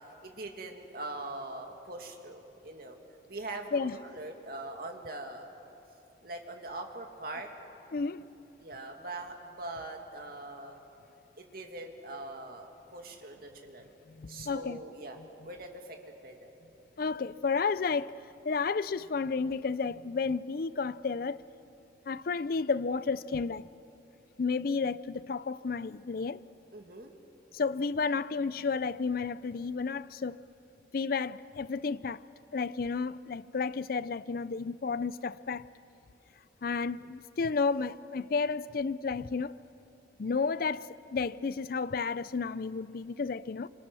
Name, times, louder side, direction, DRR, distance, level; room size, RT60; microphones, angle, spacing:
voice 1, 0.2-3.0 3.3-5.5 6.2-7.5 8.6-10.8 11.4-13.9 14.3-15.2 15.4-16.5 26.7-27.1, right 2 dB, 55° right, 2.4 m, -42 dB
voice 2, 7.9-8.2 14.1-14.8 17.0-21.4 22.1-23.7 24.4-26.4 27.5-30.4 30.9-32.2 32.5-35.6 36.6-39.6 40.2-43.7, left 4 dB, 55° left, 0.5 m, -32 dB
28.5 x 26.0 x 6.3 m
head